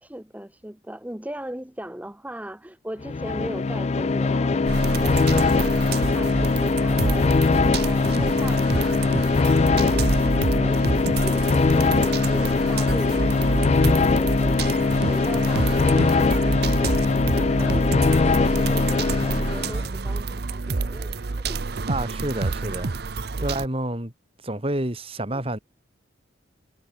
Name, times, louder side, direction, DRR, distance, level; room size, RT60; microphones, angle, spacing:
voice 1, 0.0-4.7 5.0-7.4 7.7-16.9 17.4-21.6 23.4-23.5 25.3-25.4, right 1 dB, 10° right, 1.0 m, -38 dB
sound 1, 3.0-19.9, left 3 dB, 35° left, 0.4 m, -21 dB
sound 2, 4.7-23.7, right 3 dB, 55° right, 0.7 m, -28 dB
voice 2, 21.9-22.9 23.4-24.1 24.4-25.6, right 1 dB, 30° right, 2.8 m, -28 dB
head